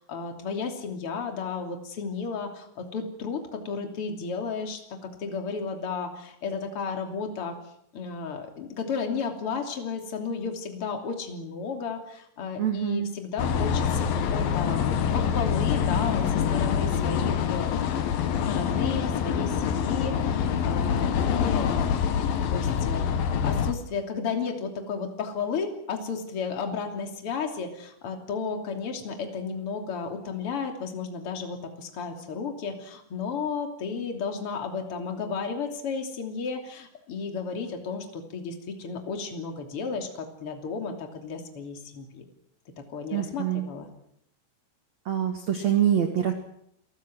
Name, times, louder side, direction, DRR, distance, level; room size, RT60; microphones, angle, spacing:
voice 1, 0.0-7.6 7.9-17.7 18.4-21.8 22.2-42.2 42.8-43.9, left 5 dB, 35° left, 4 dB, 3.0 m, -33 dB
voice 2, 12.6-13.2 43.1-43.7 45.0-46.3, right 10 dB, 70° right, 6 dB, 1.6 m, -25 dB
sound 1, 13.4-23.7, left 7 dB, 65° left, 2.4 m, -25 dB
28.0 x 19.0 x 6.3 m, 0.75 s
omnidirectional pair, 5.9 m